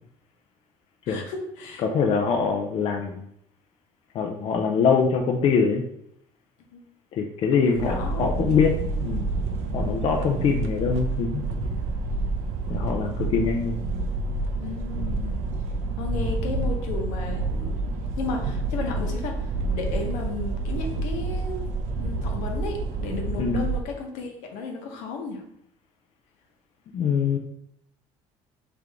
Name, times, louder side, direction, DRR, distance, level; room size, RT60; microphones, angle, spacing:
voice 1, 1.1-1.8 6.7-6.8 7.6-8.3 9.7-9.8 14.6-15.4 16.0-17.8 18.2-21.6 22.0-25.4, left 3 dB, 85° left, 2 dB, 1.0 m, -34 dB
voice 2, 1.8-3.2 4.1-5.8 7.1-8.7 9.0-9.3 9.7-11.4 12.7-13.8 23.3-23.6 26.9-27.4, left 5 dB, 45° left, 3 dB, 0.5 m, -23 dB
sound 1, 7.8-23.8, right 3 dB, 70° right, 0.5 m, -28 dB
3.7 x 3.4 x 3.4 m, 0.74 s
cardioid pair, 125°, 12 cm